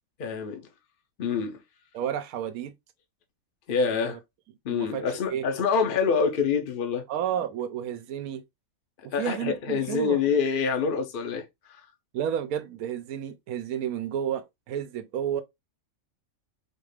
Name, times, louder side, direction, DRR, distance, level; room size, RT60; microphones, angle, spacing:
voice 1, 0.2-0.7 1.2-1.6 3.7-4.2 4.6-7.0 9.1-11.8, left 5 dB, 50° left, 0.7 m, -26 dB
voice 2, 1.9-2.8 3.9-4.2 4.7-5.0 5.3-5.5 7.1-8.4 9.2-10.2 12.1-15.4, right 9 dB, 85° right, 1.1 m, -31 dB
4.2 x 2.4 x 3.2 m
omnidirectional pair, 1.5 m